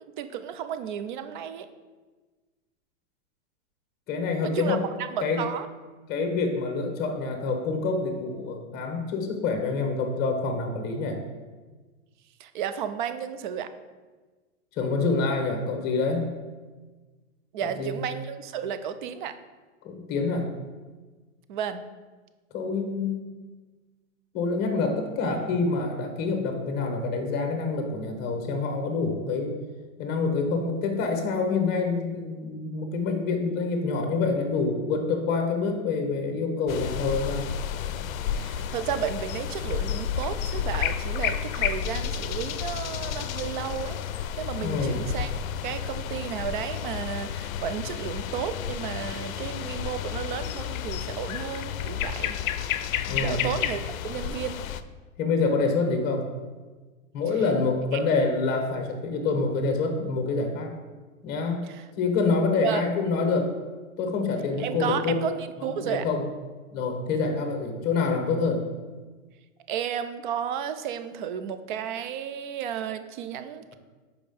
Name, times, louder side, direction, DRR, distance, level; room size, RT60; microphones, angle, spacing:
voice 1, 0.0-1.7 4.4-4.8 5.1-5.7 12.4-13.7 17.5-19.3 21.5-21.8 38.4-44.0 44.4-45.3 45.6-52.4 53.2-54.6 57.9-58.0 61.6-61.9 62.6-62.8 64.6-66.0 69.7-73.8, right 8 dB, 40° right, 10 dB, 0.4 m, -33 dB
voice 2, 4.1-4.9 5.2-5.4 6.1-11.2 14.8-16.3 17.6-18.0 19.8-20.5 22.5-23.3 24.3-29.5 30.0-37.5 44.6-45.0 53.1-53.4 55.2-56.3 57.1-60.7 61.2-61.6 62.0-63.5 64.0-65.1 65.6-66.2 66.7-68.6, left 4 dB, 25° left, 4 dB, 1.0 m, -26 dB
sound 1, 36.7-54.8, left 9 dB, 80° left, 0.5 m, -31 dB
5.1 x 4.7 x 5.2 m, 1.3 s
hypercardioid pair, 145°, 40 cm